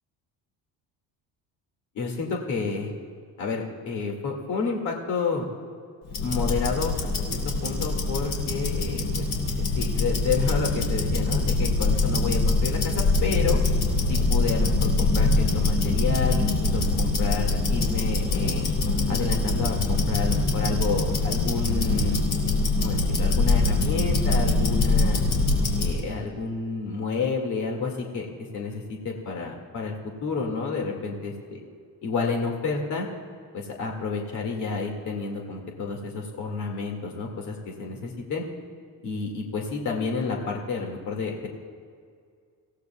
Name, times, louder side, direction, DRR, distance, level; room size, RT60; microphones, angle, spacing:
voice 1, 1.9-2.9 3.4-5.5 6.2-9.3 9.5-13.6 14.1-18.6 19.1-22.2 22.8-25.2 25.8-30.0 30.2-31.6 32.0-33.1 33.5-38.4 39.0-41.5, left 4 dB, 50° left, 1 dB, 2.1 m, -30 dB
Tick-tock, 6.1-26.0, left 2 dB, 90° left, 3.6 m, -24 dB
26.0 x 16.5 x 2.3 m, 2.2 s
cardioid pair, 175°, 38 cm